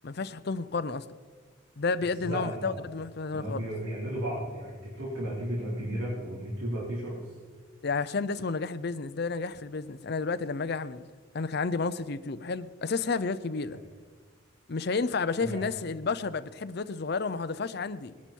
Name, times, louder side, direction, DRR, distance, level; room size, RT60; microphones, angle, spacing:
voice 1, 0.0-1.0 1.8-3.6 7.8-11.1 11.3-13.8 14.7-18.1, left 4 dB, 50° left, 0.6 m, -31 dB
voice 2, 2.2-2.8 3.3-7.1 13.7-13.8 15.4-15.6, right 1 dB, 85° right, 4.3 m, -34 dB
20.0 x 11.5 x 4.6 m
head